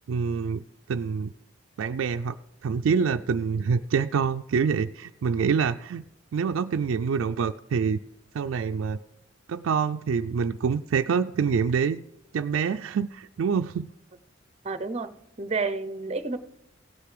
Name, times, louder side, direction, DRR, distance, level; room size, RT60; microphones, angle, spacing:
voice 1, 0.1-0.6 0.9-1.3 1.8-2.4 2.6-6.0 6.3-8.0 8.3-9.0 9.5-12.0 12.3-13.9, right 6 dB, 80° right, 0.4 m, -26 dB
voice 2, 14.6-16.4, right 3 dB, 30° right, 0.6 m, -30 dB
17.0 x 6.7 x 4.9 m
head